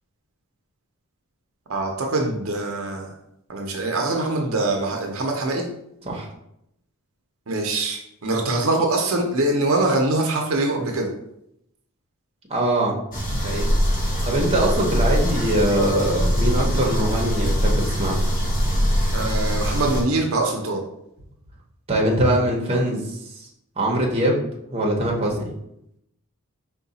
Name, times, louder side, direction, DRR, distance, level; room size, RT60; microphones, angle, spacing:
voice 1, 1.7-3.1 3.5-5.7 7.5-11.1 19.1-20.8, right 2 dB, 65° right, 2 dB, 0.6 m, -23 dB
voice 2, 12.5-12.9 13.3-13.6 14.2-18.2 21.9-23.2 23.8-24.4 24.7-25.5, right 1 dB, 25° right, -2 dB, 0.8 m, -22 dB
sound 1, 13.1-20.0, equal, 35° left, 1.0 m, -22 dB
4.7 x 2.2 x 3.9 m, 0.79 s
head